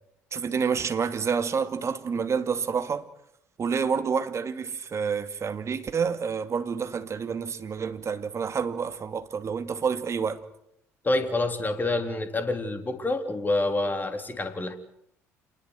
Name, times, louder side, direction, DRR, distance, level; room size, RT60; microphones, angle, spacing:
voice 1, 0.3-3.1 3.6-10.4, right 6 dB, 40° right, 2.4 m, -28 dB
voice 2, 11.0-14.8, left 2 dB, 25° left, 3.3 m, -27 dB
27.5 x 20.5 x 8.0 m
hypercardioid pair, 55°, 8 cm